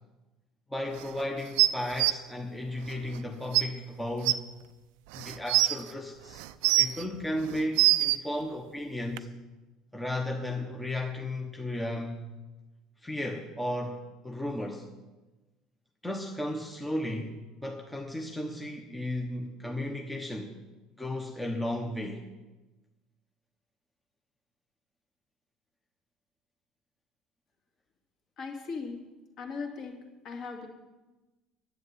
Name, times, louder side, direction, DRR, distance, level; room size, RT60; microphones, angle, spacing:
voice 1, 0.7-4.5 5.1-6.4 6.8-9.3 9.9-12.2 13.0-14.9 16.0-20.5 21.0-22.3, left 1 dB, 5° left, 2 dB, 1.0 m, -34 dB
sound 1, 1.6-2.1 3.2-3.3 3.5-3.6 4.2-4.3 5.1-5.7 6.4-7.0 7.5-8.2 9.2-9.3, right 17 dB, 80° right, 0.5 m, -23 dB
voice 2, 28.4-29.0 29.4-30.7, left 4 dB, 40° left, 2 dB, 2.6 m, -38 dB
10.5 x 8.5 x 9.7 m, 1.1 s
cardioid pair, 155°, 0 cm